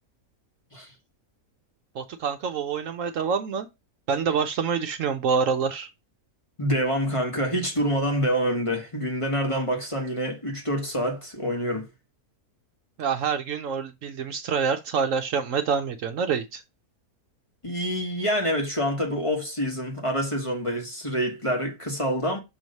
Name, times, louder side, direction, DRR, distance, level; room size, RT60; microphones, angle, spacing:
voice 1, 1.9-3.7 4.1-5.9 13.0-16.6, right 6 dB, 65° right, 0.9 m, -26 dB
voice 2, 6.6-11.9 17.6-22.4, equal, 25° left, 1.3 m, -26 dB
6.3 x 3.1 x 5.2 m
omnidirectional pair, 1.6 m